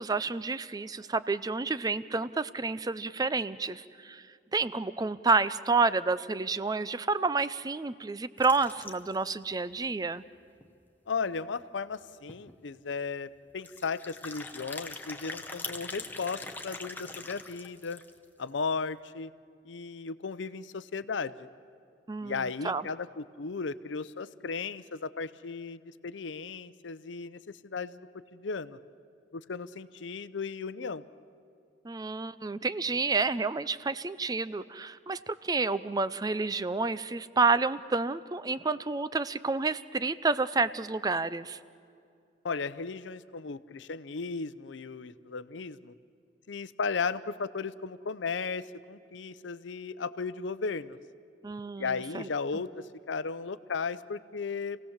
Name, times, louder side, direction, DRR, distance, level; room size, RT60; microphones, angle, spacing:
voice 1, 0.0-4.2 4.5-10.2 22.1-22.8 31.8-41.6 51.4-52.3, right 4 dB, 20° right, 15 dB, 0.4 m, -29 dB
sound 1, 8.4-9.3 9.8-9.9 10.1-10.2 10.6-10.7 11.9-12.0 12.3-12.5 13.6-18.2, left 3 dB, 10° left, 0.9 m, -42 dB
voice 2, 11.1-18.0 18.4-19.3 19.6-21.5 22.2-28.0 28.3-28.8 29.3-31.0 42.4-45.9 46.5-51.0 51.8-54.8, left 4 dB, 80° left, 15 dB, 0.6 m, -35 dB
27.5 x 17.5 x 7.3 m, 2.4 s
head